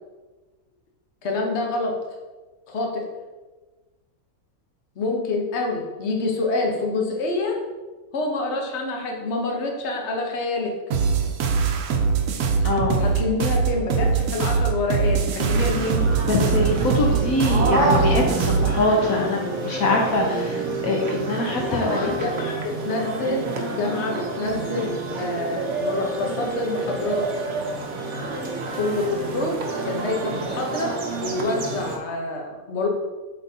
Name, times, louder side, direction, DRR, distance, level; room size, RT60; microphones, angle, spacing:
voice 1, 1.2-2.0 2.7-3.1 5.0-7.6 8.1-10.7 13.0-16.1 21.7-27.4 28.7-32.9, left 2 dB, 50° left, 0 dB, 1.2 m, -27 dB
sound 1, 10.9-18.8, right 5 dB, 85° right, 1.1 m, -22 dB
voice 2, 12.6-13.0 15.5-15.6 16.2-22.1, left 2 dB, 70° left, 0 dB, 1.2 m, -23 dB
sound 2, 15.4-32.0, right 3 dB, 60° right, 1.1 m, -28 dB
7.8 x 4.5 x 2.8 m, 1.2 s
omnidirectional pair, 1.5 m